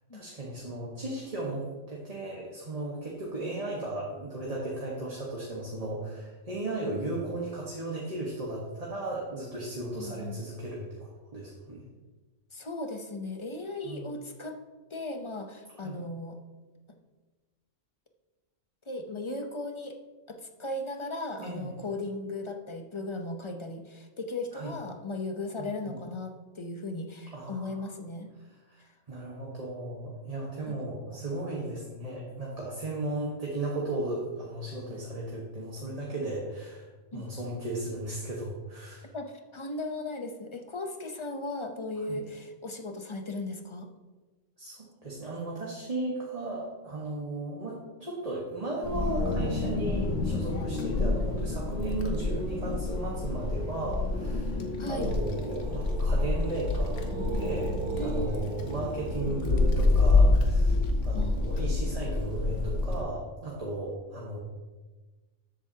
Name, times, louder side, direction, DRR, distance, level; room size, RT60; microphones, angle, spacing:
voice 1, 0.1-11.8 13.8-14.1 15.8-16.0 21.4-21.7 24.5-24.7 25.6-25.9 27.3-27.9 28.7-28.8 29.1-39.1 42.1-42.2 44.6-54.6 54.9-57.1 57.3-64.4, right 2 dB, 30° right, -4 dB, 1.4 m, -35 dB
voice 2, 10.0-10.4 12.5-14.6 14.9-16.4 18.9-20.0 20.3-28.3 30.7-30.8 37.1-37.2 39.1-43.9 54.8-55.1 57.9-58.5 61.1-61.5, left 2 dB, 30° left, 5 dB, 0.7 m, -37 dB
Wind, 48.8-63.0, left 3 dB, 75° left, 1.4 m, -27 dB
sound 1, 55.0-60.1, right 4 dB, 45° right, 1.1 m, -38 dB
13.0 x 8.0 x 2.8 m, 1.3 s
omnidirectional pair, 1.3 m